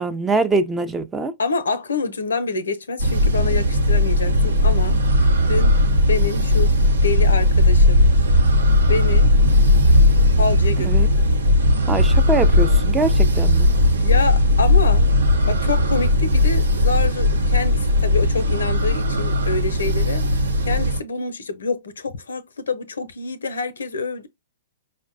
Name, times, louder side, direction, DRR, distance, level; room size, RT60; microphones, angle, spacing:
voice 1, 0.0-1.3 10.9-11.1 11.9-13.7, right 3 dB, 15° right, 0.5 m, -23 dB
voice 2, 1.4-5.0 5.5-5.7 6.1-6.7 7.0-8.1 8.9-9.3 10.4-10.9 14.0-15.1 15.5-24.3, left 4 dB, 75° left, 0.6 m, -26 dB
sound 1, 3.0-21.0, left 1 dB, 80° right, 0.8 m, -17 dB
5.0 x 2.1 x 2.5 m
figure-of-eight pair, 115°, 0 cm